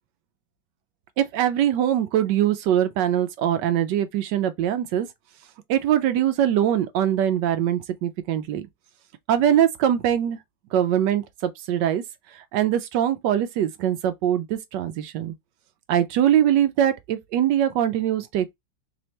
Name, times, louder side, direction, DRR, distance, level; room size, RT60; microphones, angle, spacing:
voice 1, 1.2-5.1 5.7-8.7 9.3-10.4 10.7-12.0 12.3-15.3 15.9-18.5, right 10 dB, 75° right, 1.2 m, -22 dB
3.4 x 3.1 x 2.7 m
omnidirectional pair, 2.0 m